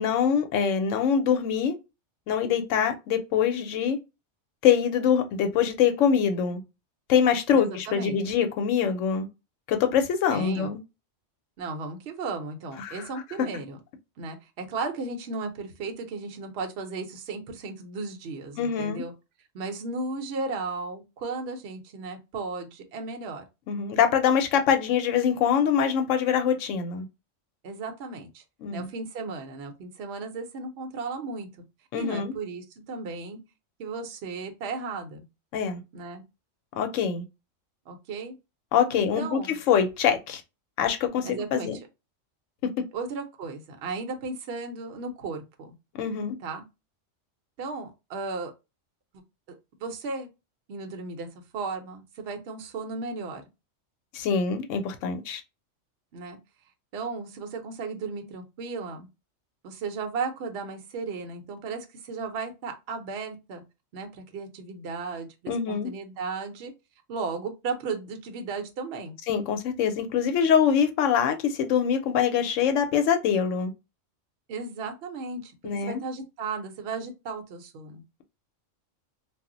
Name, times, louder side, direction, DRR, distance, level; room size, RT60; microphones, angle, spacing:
voice 1, 0.0-1.7 2.3-4.0 4.6-6.6 7.1-9.3 9.7-10.8 12.8-13.0 18.6-19.0 23.7-27.1 28.6-28.9 31.9-32.3 35.5-35.8 36.8-37.2 38.7-40.4 40.8-41.8 46.0-46.4 54.1-55.4 65.5-65.9 69.3-73.7 75.6-76.0, left 7 dB, 80° left, 1.0 m, -24 dB
voice 2, 7.5-8.2 10.3-10.7 11.6-13.8 14.2-19.1 19.5-23.5 27.6-28.4 28.7-31.5 31.9-33.4 33.8-35.2 35.9-36.2 37.9-38.3 38.9-39.6 41.2-41.9 42.9-45.7 46.4-46.6 47.6-48.5 49.5-49.6 49.8-50.3 50.7-51.3 51.5-53.4 56.1-56.4 56.9-59.1 59.6-63.6 63.9-66.7 67.1-69.2 74.5-78.0, right 4 dB, 60° right, 0.8 m, -35 dB
2.4 x 2.0 x 3.7 m
omnidirectional pair, 1.3 m